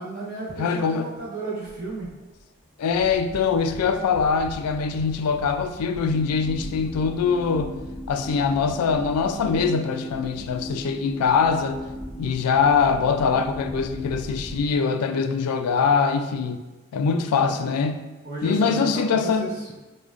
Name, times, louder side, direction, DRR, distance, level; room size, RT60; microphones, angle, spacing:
voice 1, 0.0-2.1 17.1-17.7 18.2-19.7, right 2 dB, 35° right, -7 dB, 1.0 m, -34 dB
voice 2, 0.6-1.0 2.8-7.7 8.1-11.8 12.2-16.6 16.9-18.0 18.4-19.5, left 5 dB, 90° left, 11 dB, 0.3 m, -23 dB
sound 1, 1.6-14.7, equal, 10° right, 0.5 m, -42 dB
sound 2, 6.0-15.9, left 1 dB, 10° left, 1.0 m, -38 dB
4.8 x 2.2 x 2.4 m, 1.1 s
head